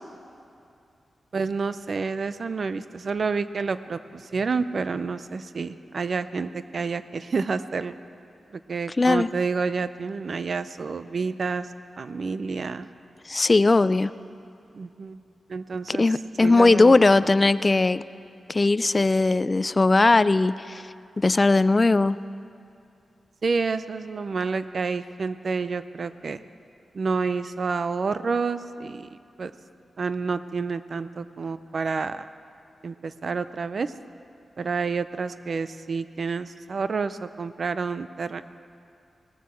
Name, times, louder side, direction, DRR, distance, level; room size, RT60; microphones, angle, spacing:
voice 1, 1.3-7.9 8.5-11.7 12.0-12.9 14.7-15.2 15.5-17.0 23.4-26.4 26.9-29.5 30.0-32.3 32.8-33.9 34.6-38.4, right 4 dB, 60° right, 13 dB, 0.5 m, -29 dB
voice 2, 9.0-9.3 13.3-14.1 15.9-18.0 18.5-20.8 21.2-22.2, left 3 dB, 35° left, 16 dB, 0.3 m, -19 dB
19.0 x 7.6 x 7.0 m, 2.7 s
cardioid pair, 60°, 0 cm